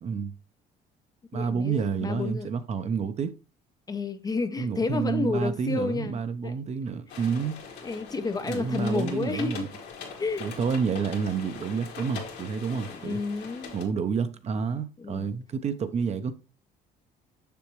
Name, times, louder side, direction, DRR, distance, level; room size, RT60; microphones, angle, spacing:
voice 1, 0.0-0.3 1.3-3.3 4.6-7.6 8.5-9.7 10.4-13.2 13.7-16.3, right 6 dB, 40° right, 0.7 m, -29 dB
voice 2, 1.3-2.5 3.9-6.6 7.8-9.7 10.2-10.5 12.8-13.8 15.0-15.3, left 3 dB, 20° left, 0.6 m, -30 dB
sound 1, 7.1-13.8, left 5 dB, 80° left, 2.1 m, -42 dB
6.9 x 6.4 x 3.1 m
cardioid pair, 110°, 17 cm